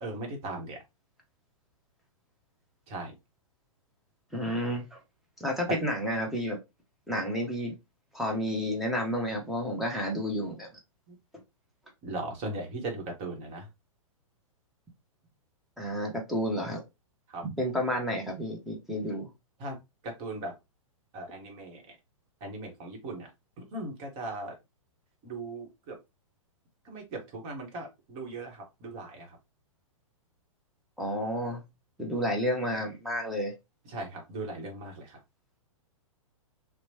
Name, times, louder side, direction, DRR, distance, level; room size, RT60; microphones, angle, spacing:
voice 1, 0.0-0.8 2.9-3.1 11.1-11.2 12.0-13.6 17.3-17.4 19.6-19.8 20.0-20.5 21.1-21.8 22.4-23.3 23.7-24.5 25.2-26.0 26.9-29.3 33.9-35.2, right 2 dB, 35° right, 2 dB, 1.1 m, -38 dB
voice 2, 4.3-5.0 5.4-6.6 7.1-7.7 8.1-10.7 15.8-16.8 17.4-19.3 31.0-31.6 32.0-33.5, equal, ahead, 0 dB, 0.7 m, -31 dB
2.9 x 2.1 x 2.7 m, 0.22 s
figure-of-eight pair, 110°, 18 cm